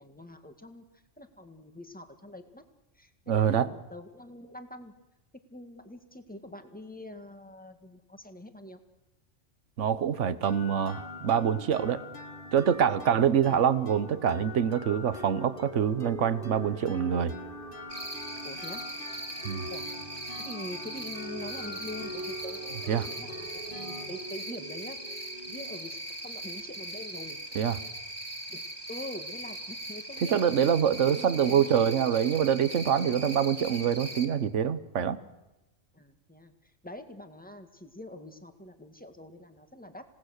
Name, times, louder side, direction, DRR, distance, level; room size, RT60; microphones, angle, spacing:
voice 1, 0.0-2.6 3.0-5.0 5.5-8.8 13.5-13.7 18.4-18.8 19.7-19.9 20.4-27.4 28.5-28.6 28.9-30.5 30.9-32.0 35.9-40.0, left 1 dB, 5° left, 7 dB, 1.8 m, -45 dB
voice 2, 3.3-3.7 9.8-12.0 12.5-17.4 19.4-19.7 22.9-23.1 27.5-27.8 30.2-35.2, right 8 dB, 75° right, 15 dB, 1.3 m, -25 dB
sound 1, 10.4-26.0, left 1 dB, 45° left, 2.0 m, -43 dB
Cricket, 17.9-34.3, right 1 dB, 20° right, 2.5 m, -40 dB
27.5 x 18.5 x 6.6 m, 1.0 s
omnidirectional pair, 1.3 m